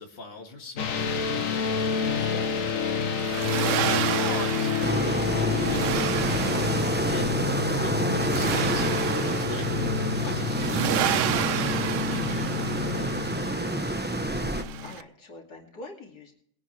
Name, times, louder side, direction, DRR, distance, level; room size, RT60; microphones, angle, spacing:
voice 1, 0.0-2.8 3.8-13.2, left 3 dB, 35° left, 1 dB, 2.3 m, -41 dB
sound 1, 0.8-14.9, left 6 dB, 60° left, 1.4 m, -29 dB
Accelerating revving vroom, 1.0-15.0, right 11 dB, 65° right, 0.8 m, -32 dB
sound 2, 4.8-14.6, right 1 dB, 10° right, 0.7 m, -29 dB
voice 2, 14.5-16.3, left 2 dB, 85° left, 0 dB, 3.2 m, -45 dB
21.5 x 10.0 x 3.3 m, 0.66 s
omnidirectional pair, 1.7 m